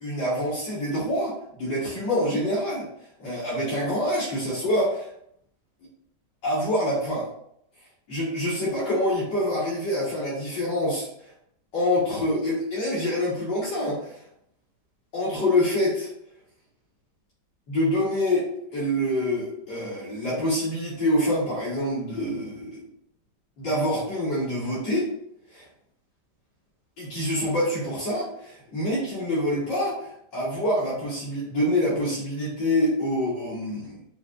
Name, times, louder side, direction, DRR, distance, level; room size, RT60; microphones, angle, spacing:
voice 1, 0.0-2.9 3.2-5.1 6.4-7.3 8.1-11.1 11.7-14.2 15.1-16.1 17.7-22.8 23.6-25.1 25.5-25.6 27.0-34.0, left 1 dB, 80° left, -10 dB, 2.2 m, -26 dB
5.3 x 2.6 x 2.5 m, 0.72 s
omnidirectional pair, 1.9 m